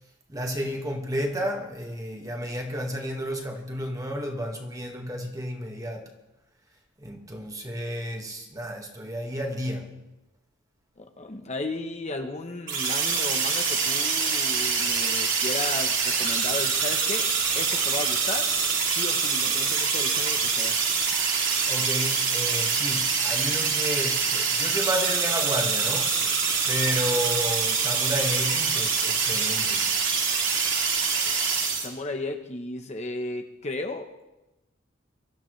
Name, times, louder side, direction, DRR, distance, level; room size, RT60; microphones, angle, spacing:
voice 1, 0.3-6.1 7.0-9.9 21.7-26.2 26.7-29.8, equal, 15° right, 1.6 m, -31 dB
voice 2, 11.0-17.3 17.5-18.5 18.9-20.8 31.8-34.3, left 2 dB, 35° left, 0.9 m, -34 dB
sound 1, 12.7-31.9, right 5 dB, 60° right, 2.8 m, -25 dB
23.0 x 13.0 x 3.2 m
head